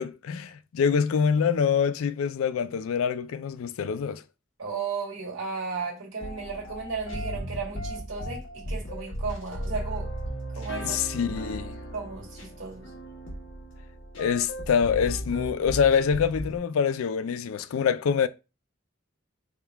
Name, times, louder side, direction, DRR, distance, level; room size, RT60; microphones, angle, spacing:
voice 1, 0.0-4.2 10.8-11.8 14.2-18.3, left 7 dB, 85° left, 0.4 m, -25 dB
voice 2, 4.6-10.1 10.5-11.4 11.9-12.9, right 4 dB, 80° right, 1.6 m, -35 dB
sound 1, 6.2-16.6, equal, 65° left, 1.1 m, -36 dB
3.5 x 2.3 x 4.5 m
head